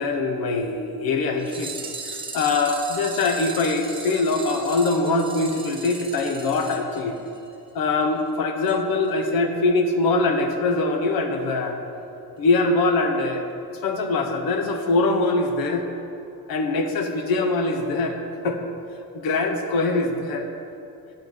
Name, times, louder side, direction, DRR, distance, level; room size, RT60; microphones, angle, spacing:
voice 1, 0.0-1.7 2.0-7.2 7.7-11.8 12.4-13.4 13.8-15.9 16.5-18.2 18.4-18.6 19.1-20.5, left 3 dB, 60° left, 5 dB, 1.2 m, -23 dB
sound 1, 1.4-7.6 7.8-7.9 8.2-8.3 8.7-8.8 9.1-9.2, right 4 dB, 10° right, 0.9 m, -37 dB
8.9 x 6.0 x 7.5 m, 2.7 s
cardioid pair, 130°, 41 cm